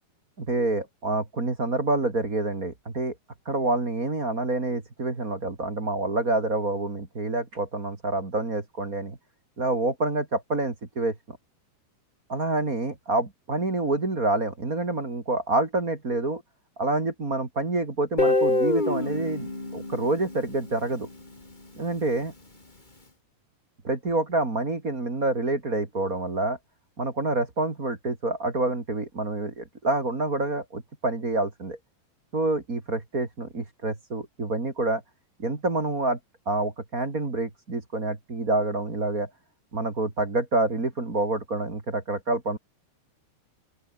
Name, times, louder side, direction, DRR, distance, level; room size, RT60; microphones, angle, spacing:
voice 1, 0.4-3.1 3.4-9.2 9.6-11.4 12.3-16.4 16.8-21.1 21.8-22.3 23.8-26.6 27.0-31.8 32.3-35.0 35.4-36.2 36.5-39.3 39.7-42.6, right 2 dB, 25° right, 2.9 m, -27 dB
Guitar, 18.2-21.1, left 2 dB, 15° left, 2.6 m, -26 dB
open air
omnidirectional pair, 4.9 m